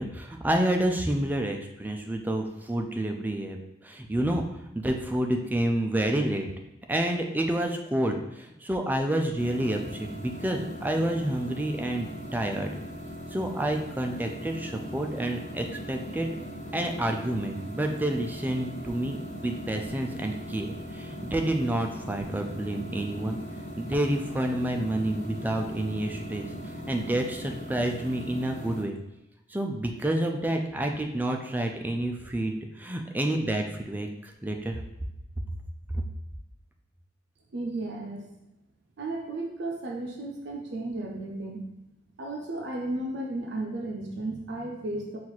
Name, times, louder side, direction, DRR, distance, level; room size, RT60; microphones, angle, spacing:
voice 1, 0.0-3.6 3.8-4.4 4.8-6.5 6.9-12.7 13.3-16.4 16.7-19.2 19.4-23.4 23.8-29.0 29.5-34.8, right 1 dB, 10° right, 3 dB, 0.3 m, -29 dB
sound 1, 9.4-28.8, equal, 40° left, 0.5 m, -39 dB
voice 2, 37.5-38.3 39.0-41.6 42.2-45.2, right 2 dB, 65° right, 0 dB, 0.5 m, -34 dB
4.3 x 2.4 x 4.0 m, 0.91 s
head